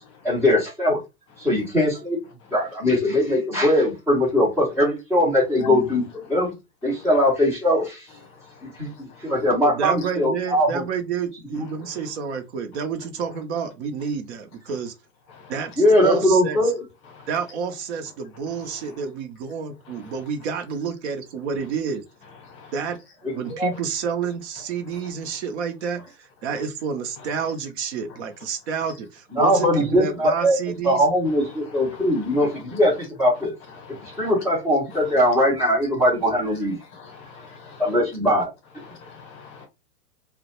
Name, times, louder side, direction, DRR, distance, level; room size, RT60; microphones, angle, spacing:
voice 1, 0.2-1.0 1.4-2.2 2.5-6.0 6.3-6.5 6.8-8.1 8.6-10.8 11.5-11.6 15.8-16.8 23.2-23.7 29.3-30.6 30.8-33.5 34.0-36.8 37.8-38.5, left 1 dB, 5° right, 0.5 m, -21 dB
voice 2, 8.5-9.3 15.3-15.5 17.2-17.3 20.0-20.1 22.4-22.7 31.6-32.6 33.8-34.3 34.9-35.0 36.9-38.0 38.8-39.7, left 5 dB, 25° left, 0.8 m, -42 dB
voice 3, 9.6-14.9 15.5-16.6 17.3-22.0 22.7-23.0 23.3-31.0, right 6 dB, 50° right, 0.6 m, -29 dB
2.2 x 2.1 x 2.9 m
hypercardioid pair, 135°, 45 cm